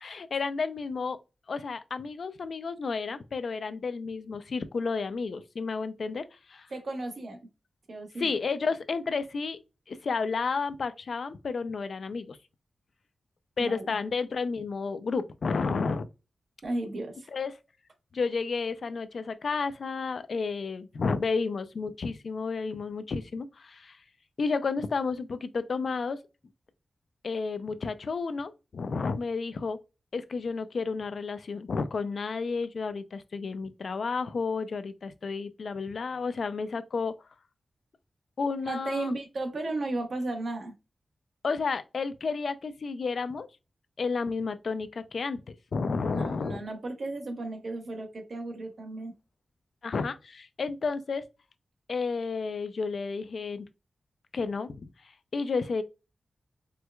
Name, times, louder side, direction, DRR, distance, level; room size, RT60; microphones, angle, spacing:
voice 1, 0.0-1.2 1.5-6.7 8.2-9.6 9.9-12.4 13.6-16.1 17.3-17.5 18.1-24.0 24.4-26.2 27.2-29.8 30.1-37.1 38.4-39.1 41.4-43.5 44.0-45.4 45.7-46.6 49.8-51.2 51.9-53.7 54.3-54.9 55.3-55.8, left 4 dB, 65° left, 0.3 m, -31 dB
voice 2, 6.7-7.4 7.9-8.3 13.6-13.9 16.6-17.3 38.6-40.7 46.1-49.1, right 2 dB, 60° right, 0.9 m, -34 dB
4.4 x 2.2 x 2.2 m
wide cardioid pair, 105°, 0 cm